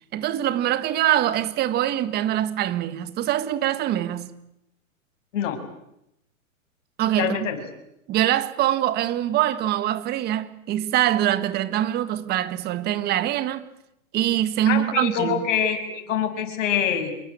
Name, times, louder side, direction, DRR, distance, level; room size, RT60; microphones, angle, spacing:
voice 1, 0.1-4.3 7.0-7.5 8.1-13.6 14.1-15.5, right 12 dB, 25° right, 1.6 m, -24 dB
voice 2, 7.2-7.6 14.7-17.2, left 8 dB, 65° left, 7.0 m, -25 dB
27.5 x 22.5 x 8.7 m
hypercardioid pair, 150°, 41 cm